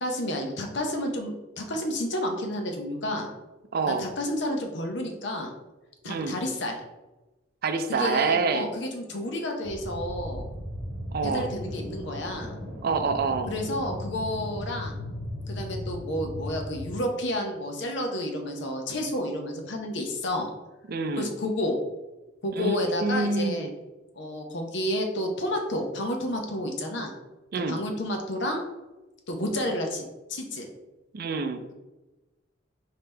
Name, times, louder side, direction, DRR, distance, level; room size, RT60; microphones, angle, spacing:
voice 1, 0.0-3.3 3.9-5.5 6.0-6.8 7.9-10.5 11.2-12.5 13.5-14.9 15.5-20.5 21.2-21.8 22.4-23.7 24.1-27.1 27.7-28.6 29.3-30.0 30.3-30.7, left 1 dB, 65° left, 3 dB, 0.8 m, -30 dB
voice 2, 3.7-4.1 6.1-6.4 7.6-8.7 11.1-11.5 12.8-13.5 20.9-21.3 22.6-23.7 27.5-27.8 31.1-31.7, right 4 dB, 55° right, 8 dB, 0.4 m, -27 dB
sound 1, 9.6-17.0, left 1 dB, 10° left, 1.4 m, -36 dB
5.2 x 2.9 x 3.3 m, 1.1 s
head